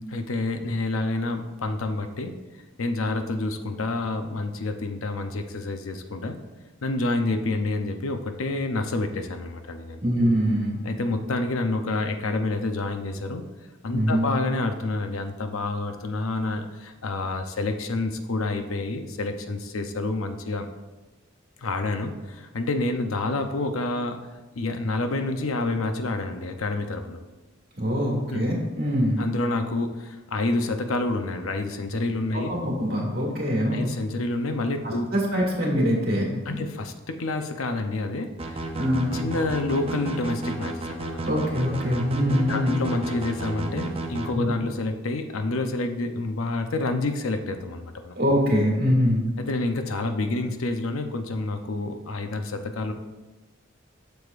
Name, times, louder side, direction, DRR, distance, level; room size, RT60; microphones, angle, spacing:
voice 1, 0.1-2.4 2.8-6.4 6.8-10.0 10.8-13.4 13.8-20.7 21.6-24.2 24.6-27.2 28.3-28.5 29.2-32.5 33.7-35.1 36.5-38.7 39.1-41.3 42.5-48.2 49.4-52.9, left 2 dB, 85° left, 7 dB, 0.7 m, -28 dB
voice 2, 10.0-10.8 13.9-14.3 27.8-29.2 32.3-33.9 34.8-36.7 38.8-39.3 41.3-42.8 44.3-44.5 48.2-49.2, equal, 50° right, -2 dB, 1.9 m, -24 dB
sound 1, 38.4-44.3, right 2 dB, 30° right, 0.6 m, -32 dB
7.9 x 7.0 x 2.5 m, 1.2 s
head